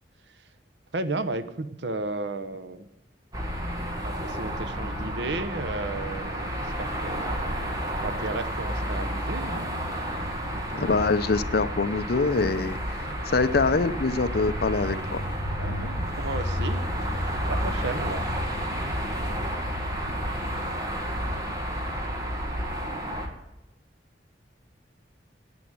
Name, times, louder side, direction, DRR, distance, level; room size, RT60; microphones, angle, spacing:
voice 1, 0.9-2.9 4.0-7.6 8.0-10.2 10.5-11.1 13.1-13.2 15.6-18.3, right 2 dB, 70° right, 11 dB, 0.9 m, -34 dB
sound 1, 3.3-23.3, equal, 20° right, 1.9 m, -31 dB
voice 2, 10.7-13.0 13.3-15.2, left 3 dB, 60° left, 12 dB, 0.6 m, -24 dB
9.9 x 8.9 x 8.8 m, 0.94 s
head